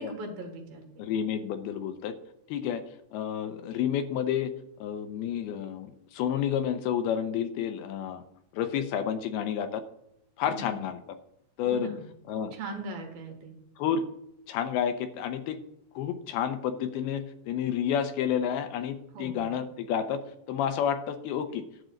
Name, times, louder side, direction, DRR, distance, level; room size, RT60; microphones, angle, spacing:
voice 1, 0.0-1.0 10.5-10.8 11.6-12.0 12.3-13.5 19.1-19.5, right 2 dB, 70° right, 3 dB, 3.1 m, -39 dB
voice 2, 1.0-2.1 2.5-2.8 3.1-4.5 4.8-8.2 8.5-9.8 10.4-11.2 11.6-11.9 12.3-12.6 13.8-14.1 14.5-15.6 16.0-20.2 20.5-21.6, left 8 dB, 85° left, 9 dB, 2.6 m, -30 dB
11.0 x 3.9 x 7.7 m, 0.79 s
omnidirectional pair, 4.5 m